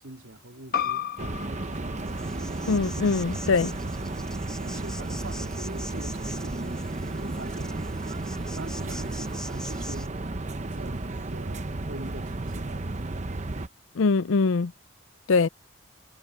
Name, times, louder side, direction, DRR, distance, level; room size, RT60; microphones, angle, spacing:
voice 1, 0.0-2.2 4.0-4.3 4.6-7.8 8.5-10.2 10.7-12.8, right 1 dB, 85° right, 3.1 m, -44 dB
sound 1, 0.7-5.9, left 9 dB, 45° left, 1.2 m, -36 dB
sound 2, 1.2-13.7, right 2 dB, 35° right, 0.8 m, -33 dB
Insect, 2.0-10.1, left 1 dB, 5° left, 0.6 m, -42 dB
voice 2, 2.7-3.7 14.0-14.7 15.3-15.5, left 4 dB, 90° left, 0.5 m, -22 dB
head